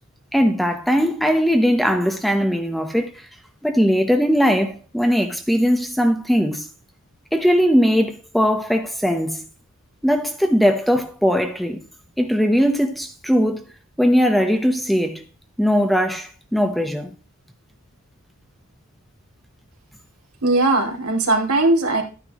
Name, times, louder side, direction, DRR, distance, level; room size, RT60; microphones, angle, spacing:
voice 1, 0.3-3.3 3.6-6.7 7.3-9.4 10.0-11.8 12.2-13.7 14.0-15.2 15.6-17.1, equal, ahead, 1.0 m, -19 dB
voice 2, 20.4-22.0, right 2 dB, 90° right, 2.8 m, -19 dB
14.0 x 9.9 x 3.1 m
head